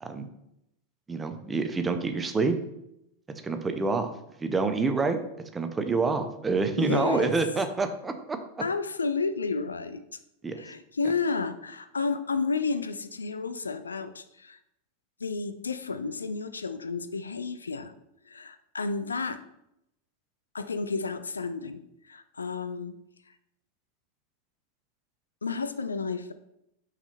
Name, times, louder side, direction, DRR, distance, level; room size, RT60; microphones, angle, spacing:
voice 1, 1.1-2.6 3.4-4.1 4.4-5.2 5.5-8.4 10.4-10.6, right 3 dB, 15° right, 7 dB, 0.7 m, -27 dB
voice 2, 6.8-7.3 8.6-10.0 10.6-14.6 15.2-17.9 18.3-19.4 20.5-23.0 23.3-23.4 25.4-26.3, left 4 dB, 75° left, 11 dB, 0.4 m, -31 dB
5.7 x 4.1 x 4.1 m, 0.81 s
figure-of-eight pair, 90°, 0 cm